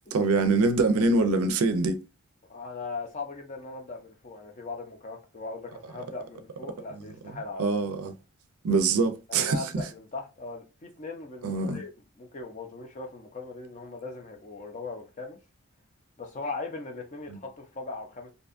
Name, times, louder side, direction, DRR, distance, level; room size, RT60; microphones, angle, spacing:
voice 1, 0.1-2.0 7.6-8.1 8.6-9.6 11.4-11.8, right 3 dB, 90° right, 0.4 m, -24 dB
voice 2, 2.5-7.8 9.3-11.9 12.2-15.4 16.2-18.3, left 3 dB, 35° left, 0.5 m, -39 dB
2.6 x 2.2 x 2.4 m
head